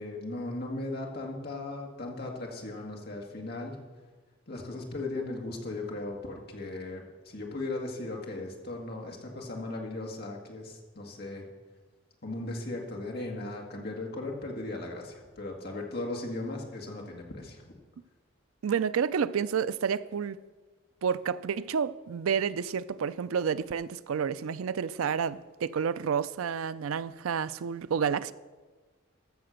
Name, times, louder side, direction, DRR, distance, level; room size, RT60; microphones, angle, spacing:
voice 1, 0.0-3.8 4.5-11.5 12.2-17.7, left 2 dB, 50° left, 1.9 m, -37 dB
voice 2, 18.6-20.4 21.0-28.3, right 7 dB, 80° right, 0.4 m, -30 dB
14.0 x 6.7 x 6.4 m
head